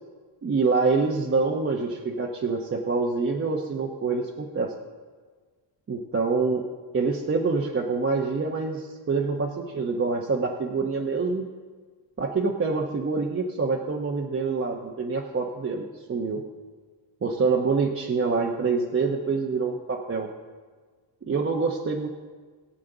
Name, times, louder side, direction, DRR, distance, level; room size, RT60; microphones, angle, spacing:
voice 1, 0.4-4.7 5.9-6.6 6.9-11.5 12.2-16.4 17.2-20.3 21.2-22.1, right 4 dB, 30° right, -1 dB, 1.0 m, -26 dB
21.0 x 7.6 x 3.9 m, 1.5 s
cardioid pair, 125°, 44 cm